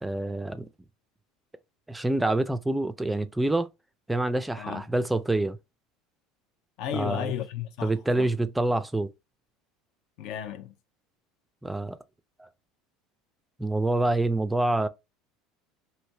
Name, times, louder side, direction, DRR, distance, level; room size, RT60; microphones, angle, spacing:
voice 1, 0.0-0.7 1.9-3.7 4.1-5.6 6.9-7.3 7.8-9.1 11.6-12.0 12.4-12.5 13.6-14.9, right 2 dB, 10° right, 0.4 m, -26 dB
voice 2, 6.8-8.3 10.2-10.7, left 9 dB, 65° left, 0.6 m, -34 dB
3.2 x 2.7 x 2.7 m
supercardioid pair, 105°, 0 cm